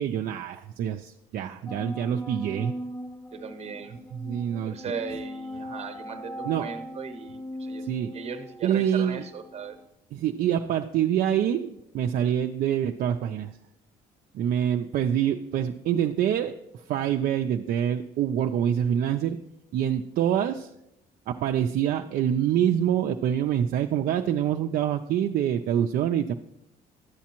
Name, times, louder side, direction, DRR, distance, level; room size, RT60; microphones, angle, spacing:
voice 1, 0.0-2.7 4.1-4.9 6.4-6.7 7.9-8.1 8.6-9.2 10.1-13.6 14.3-19.4 19.7-20.7 21.3-26.3, right 10 dB, 60° right, 4 dB, 0.4 m, -26 dB
sound 1, 1.7-9.9, equal, 10° left, 0.6 m, -39 dB
voice 2, 3.3-4.0 4.6-7.8 8.1-9.7, right 5 dB, 40° right, 7 dB, 0.9 m, -38 dB
11.0 x 7.2 x 2.9 m, 0.83 s
cardioid pair, 110°, 17 cm